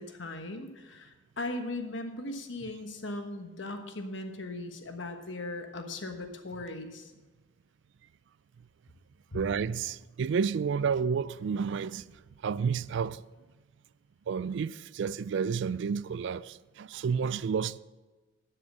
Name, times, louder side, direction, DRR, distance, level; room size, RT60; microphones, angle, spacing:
voice 1, 0.0-7.1 9.3-9.4, left 2 dB, 70° left, 1.3 m, -38 dB
voice 2, 9.3-12.1 12.4-13.2 14.3-17.8, right 6 dB, 65° right, 0.3 m, -30 dB
12.0 x 6.8 x 6.1 m
head